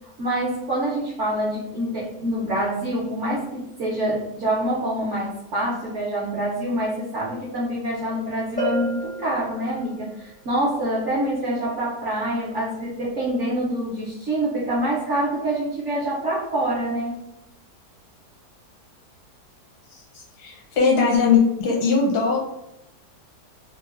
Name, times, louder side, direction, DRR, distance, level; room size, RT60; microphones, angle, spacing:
voice 1, 0.2-17.2, right 1 dB, 60° right, -6 dB, 0.8 m, -26 dB
Bell, 8.6-10.2, left 1 dB, 10° left, 0.4 m, -30 dB
voice 2, 19.9-22.4, left 5 dB, 70° left, -2 dB, 1.3 m, -20 dB
3.0 x 2.0 x 2.3 m, 0.88 s
omnidirectional pair, 1.8 m